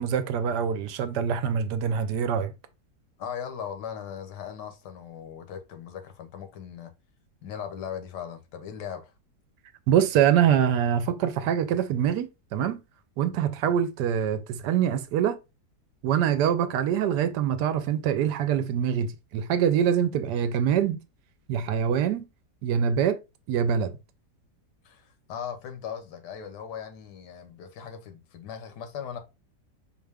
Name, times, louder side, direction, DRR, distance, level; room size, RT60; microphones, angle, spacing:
voice 1, 0.0-2.5 9.9-12.8 13.2-15.4 16.0-21.0 21.5-22.3 22.6-23.2 23.5-23.9, right 8 dB, 75° right, 1.1 m, -24 dB
voice 2, 3.2-6.9 7.4-9.1 24.8-29.2, left 8 dB, 90° left, 1.4 m, -38 dB
4.7 x 2.5 x 3.3 m
omnidirectional pair, 1.8 m